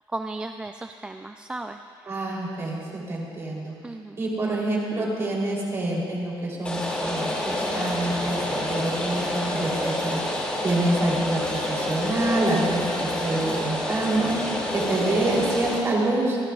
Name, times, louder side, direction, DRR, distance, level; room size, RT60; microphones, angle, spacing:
voice 1, 0.1-2.1 3.8-4.2, right 2 dB, 10° right, 5 dB, 0.3 m, -35 dB
voice 2, 2.1-3.7 4.2-10.2 10.6-14.4 14.7-16.4, right 2 dB, 30° right, -4 dB, 3.2 m, -26 dB
Rain, 6.6-15.8, left 1 dB, 15° left, 2.3 m, -28 dB
27.0 x 12.0 x 2.4 m, 2.3 s
cardioid pair, 160°, 9 cm